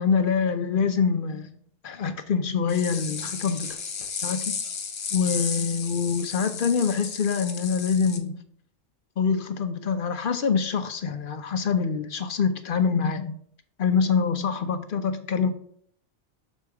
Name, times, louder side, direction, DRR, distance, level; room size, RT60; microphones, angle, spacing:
voice 1, 0.0-1.5 1.8-3.8 4.2-4.6 5.1-8.4 9.2-13.4 13.8-15.5, left 6 dB, 55° left, 9 dB, 0.7 m, -25 dB
sound 1, 2.7-8.2, left 6 dB, 85° left, 1.2 m, -34 dB
6.3 x 4.2 x 4.6 m, 0.63 s
omnidirectional pair, 1.1 m